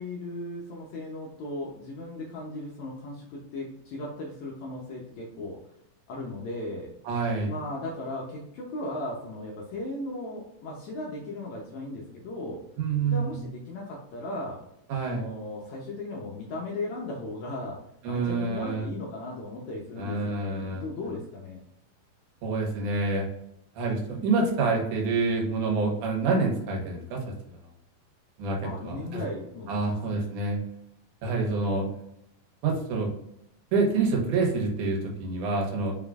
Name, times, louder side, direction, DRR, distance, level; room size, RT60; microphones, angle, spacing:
voice 1, 0.0-5.6 6.1-6.9 7.5-12.6 13.1-14.6 15.0-17.8 18.1-21.6 28.6-30.2, left 2 dB, 70° left, -2 dB, 1.9 m, -37 dB
voice 2, 7.0-7.5 12.8-13.4 14.9-15.2 18.0-18.9 20.0-20.9 22.4-23.3 23.8-27.2 28.4-29.2 29.7-30.6 31.2-31.9 32.6-33.1 33.7-35.9, right 3 dB, 75° right, 0 dB, 2.4 m, -27 dB
5.2 x 3.6 x 2.4 m, 0.78 s
omnidirectional pair, 3.7 m